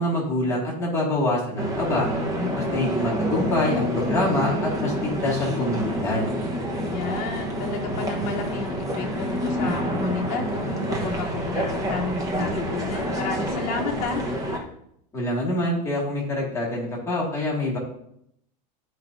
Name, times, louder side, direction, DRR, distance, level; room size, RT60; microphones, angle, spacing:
voice 1, 0.0-2.1 2.5-6.3 15.1-17.8, left 1 dB, 15° left, -4 dB, 2.1 m, -25 dB
sound 1, 1.6-14.6, equal, 15° right, 1.1 m, -28 dB
voice 2, 2.4-2.7 6.8-14.2, left 4 dB, 40° left, -1 dB, 1.2 m, -31 dB
12.0 x 5.0 x 2.6 m, 0.74 s
supercardioid pair, 155°, 21 cm